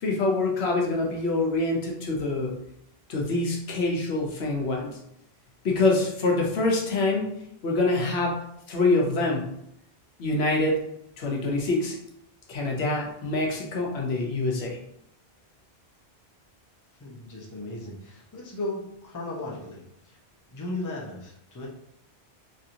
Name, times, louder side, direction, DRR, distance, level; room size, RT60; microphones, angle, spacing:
voice 1, 0.0-2.6 3.1-5.0 5.6-8.4 8.7-9.5 10.2-10.8 11.2-12.0 12.5-14.8, left 2 dB, 80° left, 0 dB, 1.0 m, -25 dB
voice 2, 17.0-20.2 20.5-21.7, left 2 dB, 20° left, -3 dB, 0.6 m, -36 dB
3.1 x 2.8 x 2.5 m, 0.74 s
omnidirectional pair, 1.1 m